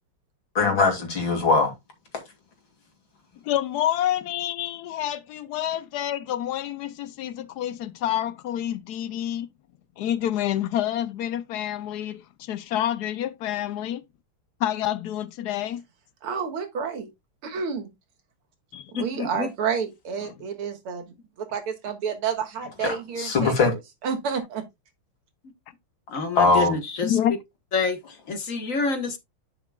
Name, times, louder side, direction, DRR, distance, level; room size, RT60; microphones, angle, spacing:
voice 1, 0.5-1.7 22.8-23.7 26.4-26.8, left 4 dB, 60° left, 3.2 m, -21 dB
voice 2, 3.4-9.5 10.0-14.0 14.6-15.8 18.7-18.9 27.0-27.4, left 11 dB, 80° left, 0.8 m, -28 dB
voice 3, 16.2-17.1 17.4-17.9 18.9-21.0 21.4-23.5 24.0-24.6, right 6 dB, 85° right, 2.4 m, -29 dB
voice 4, 18.9-19.5 26.1-27.2 27.7-29.2, left 4 dB, 45° left, 1.5 m, -28 dB
11.0 x 6.0 x 2.3 m
omnidirectional pair, 2.4 m